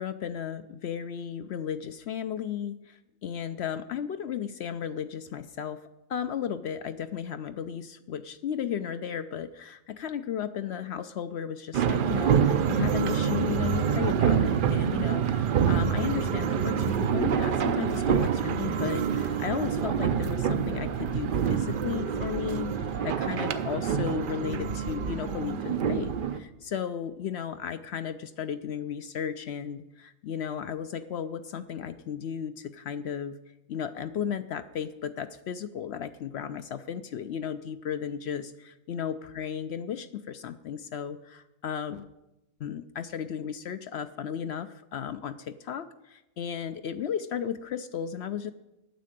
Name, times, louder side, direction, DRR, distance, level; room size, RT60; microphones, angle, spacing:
voice 1, 0.0-33.4 33.7-42.1 42.6-48.5, left 8 dB, 65° left, 12 dB, 0.6 m, -35 dB
sound 1, 11.7-26.4, right 7 dB, 60° right, 0.5 m, -26 dB
9.4 x 7.4 x 9.1 m, 0.95 s
omnidirectional pair, 1.5 m